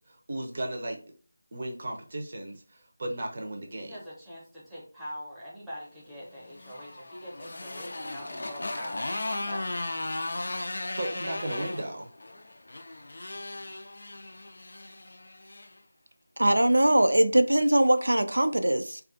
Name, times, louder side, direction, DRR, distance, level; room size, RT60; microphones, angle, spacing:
voice 1, 0.1-1.0 1.5-3.9 10.7-12.1, right 1 dB, 40° right, 0.6 m, -35 dB
voice 2, 3.8-9.8, equal, ahead, 0.7 m, -43 dB
Motorcycle, 6.3-15.7, left 2 dB, 55° left, 0.3 m, -36 dB
voice 3, 16.4-19.0, right 1 dB, 80° right, 0.3 m, -22 dB
2.4 x 2.3 x 2.4 m
figure-of-eight pair, 165°, 0 cm